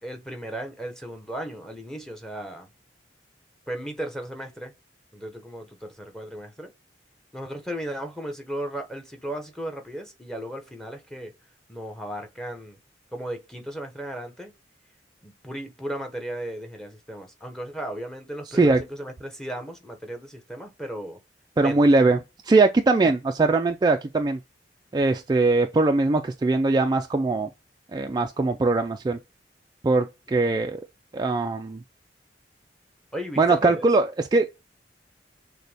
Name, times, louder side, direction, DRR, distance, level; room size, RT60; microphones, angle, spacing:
voice 1, 0.0-2.7 3.7-4.7 5.1-6.7 7.3-11.3 11.7-12.8 13.1-14.5 15.2-21.2 21.6-21.8 33.1-33.9, right 1 dB, 5° left, 0.9 m, -35 dB
voice 2, 21.6-22.2 22.4-24.4 24.9-27.5 27.9-29.2 29.8-30.8 31.1-31.8 33.4-34.5, right 3 dB, 25° right, 0.3 m, -21 dB
6.5 x 2.2 x 3.4 m
head